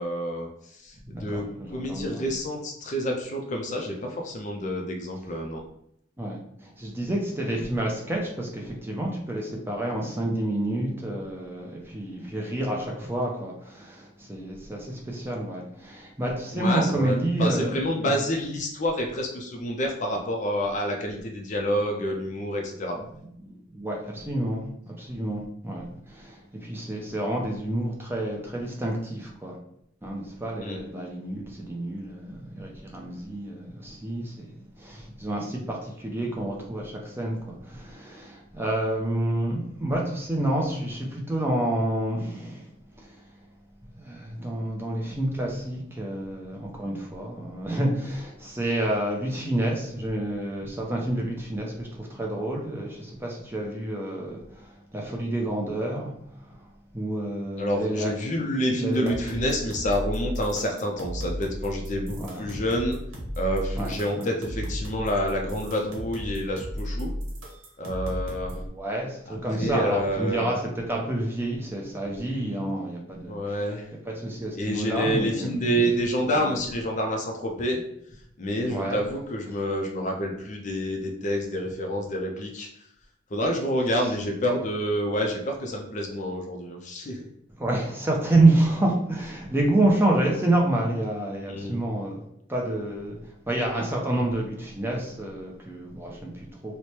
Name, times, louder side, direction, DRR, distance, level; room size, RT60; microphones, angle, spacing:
voice 1, 0.0-5.6 16.5-23.0 30.6-30.8 57.6-63.0 63.4-67.1 67.8-68.6 69.3-70.5 73.2-73.9 74.5-77.8 78.4-82.7 83.3-87.2 91.5-91.8, equal, 40° left, 2 dB, 0.5 m, -28 dB
voice 2, 1.0-2.3 6.2-18.2 23.4-29.6 30.0-34.5 34.8-42.7 43.0-43.3 44.0-56.1 56.4-56.7 56.9-58.1 58.4-59.5 62.2-62.6 63.7-64.3 68.5-73.7 74.0-75.9 78.7-79.0 87.6-92.2 92.5-96.8, right 1 dB, 10° right, -1 dB, 0.5 m, -29 dB
sound 1, 58.9-68.7, equal, 85° right, 1.0 m, -35 dB
3.2 x 2.1 x 4.2 m, 0.73 s
head